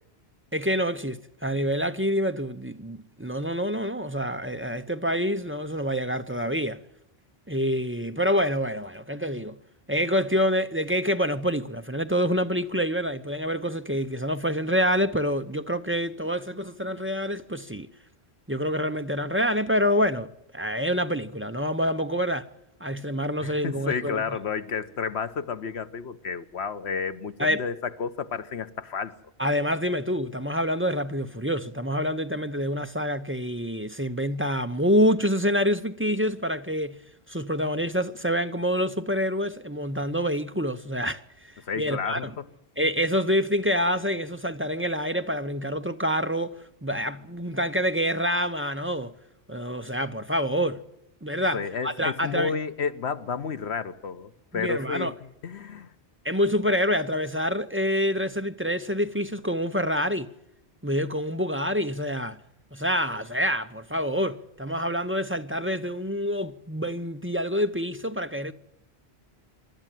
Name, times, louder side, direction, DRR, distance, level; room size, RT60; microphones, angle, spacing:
voice 1, 0.5-6.8 7.5-9.6 9.9-17.9 18.5-22.5 22.8-24.4 27.4-27.6 29.4-37.0 37.3-41.2 41.8-42.3 42.8-49.1 49.5-50.8 51.2-52.5 54.5-55.1 56.2-60.3 60.8-62.4 62.7-68.5, equal, 15° right, 0.6 m, -27 dB
voice 2, 23.4-29.2 41.6-42.5 51.5-55.1 55.4-55.9, left 6 dB, 80° left, 1.3 m, -31 dB
25.0 x 12.5 x 9.1 m
omnidirectional pair, 1.1 m